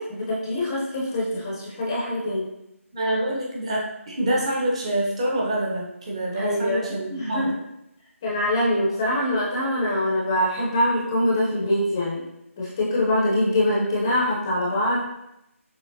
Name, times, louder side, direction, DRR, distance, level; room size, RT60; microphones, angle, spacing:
voice 1, 0.0-2.5 6.3-7.5 8.2-12.2 12.6-15.0, left 1 dB, 15° left, -5 dB, 0.6 m, -24 dB
voice 2, 2.9-7.6, right 1 dB, 25° right, -4 dB, 0.8 m, -26 dB
6.2 x 3.0 x 2.6 m, 0.84 s
figure-of-eight pair, 170°, 8 cm